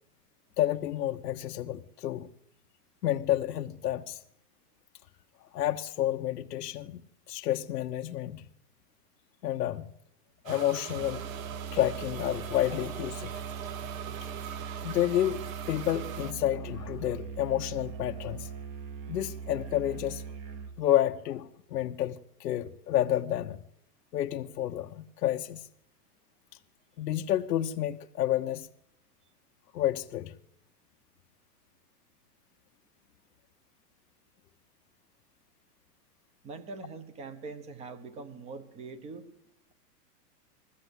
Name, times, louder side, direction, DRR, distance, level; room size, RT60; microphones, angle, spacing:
voice 1, 0.6-2.3 3.0-4.2 5.4-7.0 7.3-8.4 9.4-9.9 10.4-11.3 11.7-13.3 14.8-15.4 15.7-18.5 19.1-20.2 20.8-23.6 24.1-25.7 27.0-28.7 29.7-30.4, left 12 dB, 85° left, 1.1 m, -30 dB
sound 1, 10.5-16.3, right 9 dB, 60° right, 1.3 m, -41 dB
Musical instrument, 10.9-20.8, right 6 dB, 30° right, 1.5 m, -41 dB
voice 2, 36.4-39.3, right 4 dB, 15° right, 1.0 m, -43 dB
21.0 x 15.5 x 8.2 m
supercardioid pair, 165°, 47 cm